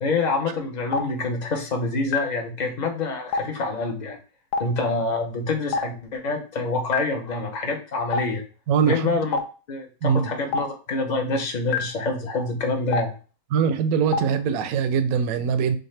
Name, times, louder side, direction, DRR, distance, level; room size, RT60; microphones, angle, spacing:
voice 1, 0.0-4.2 4.6-8.4 8.8-9.4 9.7-13.1, left 3 dB, 40° left, 3 dB, 0.7 m, -26 dB
Stream, 0.9-1.0 2.1-2.2 3.3-3.4 4.5-4.6 5.7-5.8 6.9-7.0 8.1-8.2 9.3-9.4 10.5-10.6 11.7-11.8 12.9-13.0 14.1-14.2, left 4 dB, 80° left, 1.2 m, -24 dB
voice 2, 8.7-9.2 10.0-10.3 13.5-15.8, right 7 dB, 70° right, 9 dB, 1.0 m, -22 dB
6.4 x 2.4 x 3.2 m, 0.36 s
omnidirectional pair, 1.7 m